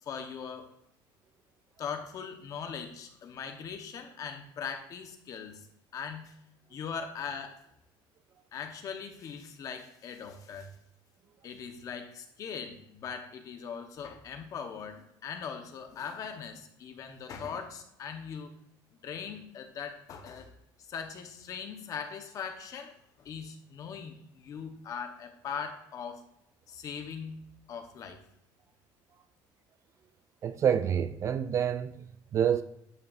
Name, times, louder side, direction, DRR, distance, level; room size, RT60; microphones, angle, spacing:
voice 1, 0.1-0.7 1.8-5.7 5.9-6.3 6.7-7.5 8.5-10.7 11.4-18.5 19.0-20.5 20.9-22.9 23.2-26.2 26.7-27.4 27.7-28.2, left 6 dB, 40° left, 1.0 m, -40 dB
voice 2, 30.4-32.6, right 8 dB, 35° right, 0.3 m, -28 dB
11.0 x 5.9 x 2.5 m
cardioid pair, 165°, 9 cm